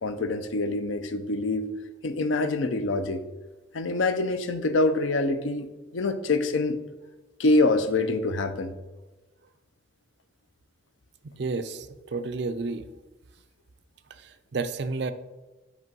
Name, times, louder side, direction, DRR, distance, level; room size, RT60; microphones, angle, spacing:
voice 1, 0.0-1.7 2.0-3.2 3.7-5.7 5.9-6.8 7.4-8.7, left 2 dB, 85° left, 10 dB, 0.6 m, -25 dB
voice 2, 11.2-12.9 14.2-15.1, right 3 dB, 60° right, 11 dB, 0.4 m, -31 dB
8.1 x 3.1 x 5.3 m, 1.1 s
head